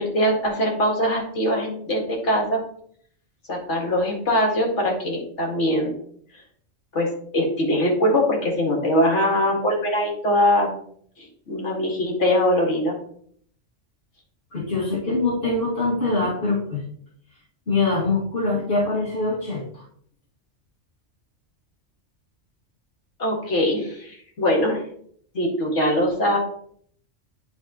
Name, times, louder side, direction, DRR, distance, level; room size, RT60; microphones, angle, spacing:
voice 1, 0.0-2.6 3.5-5.9 6.9-7.1 7.3-10.7 11.2-13.0 23.2-24.8 25.3-26.4, equal, 70° left, -1 dB, 2.2 m, -22 dB
voice 2, 14.5-16.8 17.7-19.8, left 3 dB, 50° left, -10 dB, 2.4 m, -23 dB
10.5 x 4.4 x 2.9 m, 0.62 s
omnidirectional pair, 1.3 m